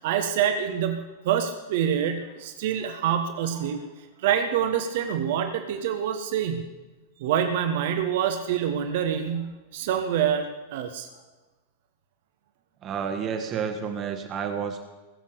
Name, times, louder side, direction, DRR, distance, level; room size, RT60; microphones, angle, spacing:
voice 1, 0.0-3.8 4.2-6.7 7.2-10.5 10.7-11.1, right 9 dB, 55° right, 7 dB, 1.2 m, -26 dB
voice 2, 12.8-14.8, right 7 dB, 30° right, 6 dB, 1.6 m, -30 dB
21.0 x 7.3 x 6.8 m, 1.2 s
figure-of-eight pair, 90°, 0 cm